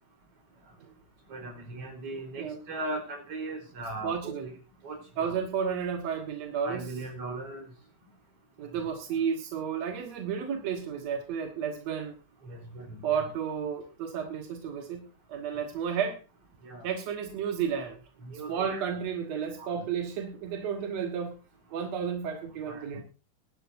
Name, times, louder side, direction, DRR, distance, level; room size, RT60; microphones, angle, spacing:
voice 1, 1.3-4.3 4.8-5.4 6.6-7.6 12.4-13.3 16.6-16.9 18.2-18.8 19.6-19.7 22.7-22.8, right 2 dB, 35° right, 2 dB, 4.7 m, -38 dB
voice 2, 4.0-4.5 5.2-6.9 8.6-12.2 13.0-16.2 16.8-18.0 18.5-21.4 21.7-23.0, right 7 dB, 55° right, 4 dB, 2.0 m, -32 dB
22.0 x 12.0 x 2.6 m, 0.32 s
omnidirectional pair, 4.6 m